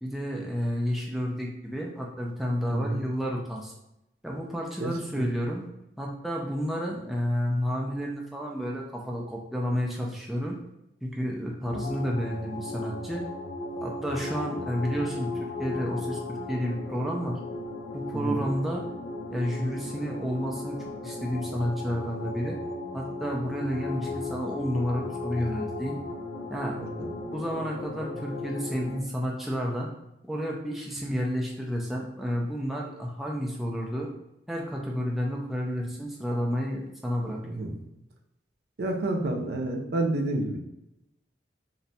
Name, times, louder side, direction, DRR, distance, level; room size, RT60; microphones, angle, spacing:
voice 1, 0.0-3.7 4.2-5.7 6.0-10.6 11.0-13.2 13.8-17.4 17.9-18.8 19.3-22.6 22.9-26.0 26.5-26.8 27.3-29.9 30.2-34.1 34.5-37.4, equal, ahead, -3 dB, 0.3 m, -31 dB
voice 2, 2.7-3.0 4.8-4.9 5.2-5.3 18.1-18.5 26.8-27.1 37.5-37.7 38.8-40.6, right 2 dB, 60° right, 1 dB, 0.5 m, -29 dB
sound 1, 11.6-29.0, left 2 dB, 85° left, 0.5 m, -36 dB
2.6 x 2.2 x 3.9 m, 0.87 s
head